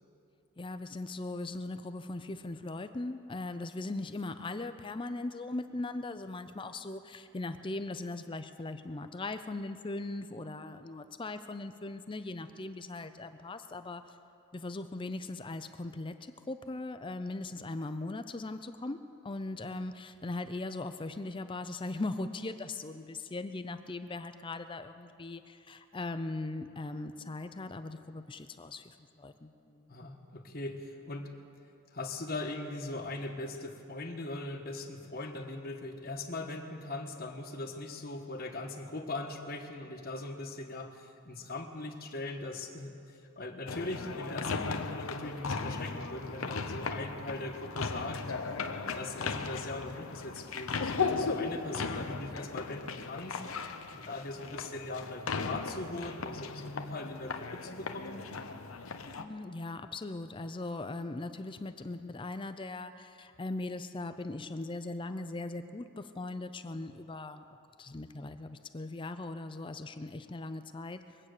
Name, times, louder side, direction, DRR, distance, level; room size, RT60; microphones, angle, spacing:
voice 1, 0.6-14.0 14.5-29.9 59.2-67.4 67.8-71.2, left 2 dB, 25° left, 10 dB, 0.5 m, -39 dB
voice 2, 29.9-31.3 31.9-43.0 43.4-48.2 48.8-53.4 53.9-58.2, left 2 dB, 45° left, 3 dB, 1.2 m, -40 dB
sound 1, 43.7-59.2, left 4 dB, 80° left, 0.8 m, -37 dB
22.0 x 8.8 x 6.6 m, 2.7 s
head